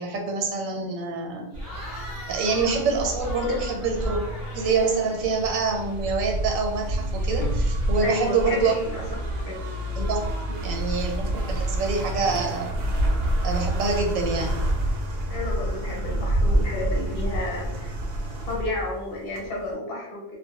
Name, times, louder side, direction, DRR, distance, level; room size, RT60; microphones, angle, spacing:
voice 1, 0.0-1.5 2.3-4.2 4.5-8.7 10.0-10.2 10.6-12.8 13.4-14.6, right 4 dB, 85° right, 2 dB, 1.0 m, -26 dB
Cheering / Crowd, 1.5-6.2, left 1 dB, 15° left, 0.8 m, -41 dB
sound 1, 1.5-19.7, right 1 dB, 65° right, 0.7 m, -28 dB
voice 2, 8.0-9.0 9.4-9.7 10.5-10.6 15.3-17.9 18.5-20.2, left 2 dB, 55° left, -3 dB, 0.7 m, -31 dB
2.2 x 2.1 x 2.7 m, 0.84 s
omnidirectional pair, 1.4 m